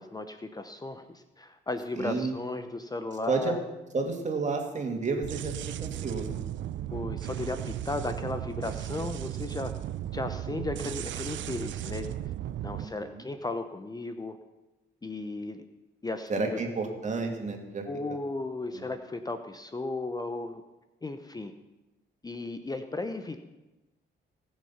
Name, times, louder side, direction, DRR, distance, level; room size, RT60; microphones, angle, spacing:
voice 1, 0.0-3.6 6.9-9.7 10.1-12.1 12.6-14.4 15.0-15.6 16.0-16.6 17.9-20.6 21.0-21.5 22.2-23.4, left 2 dB, 20° left, 8 dB, 0.8 m, -35 dB
voice 2, 1.9-2.3 3.3-3.5 3.9-5.5 5.8-6.5 12.8-13.2 16.3-17.8 18.1-18.2 18.7-18.9, right 4 dB, 35° right, 3 dB, 2.6 m, -31 dB
sound 1, 5.2-12.8, right 12 dB, 70° right, 0.5 m, -35 dB
19.0 x 6.5 x 5.9 m, 1.0 s
cardioid pair, 90°, 20 cm